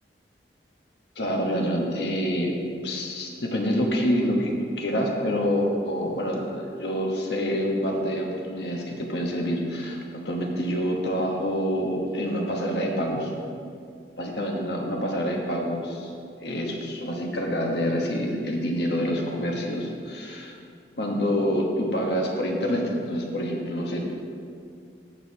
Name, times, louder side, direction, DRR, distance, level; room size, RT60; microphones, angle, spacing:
voice 1, 1.2-2.5 2.8-13.3 14.2-16.1 16.4-20.5 21.0-24.2, equal, 65° left, 0 dB, 1.2 m, -27 dB
14.0 x 6.3 x 2.9 m, 2.3 s
head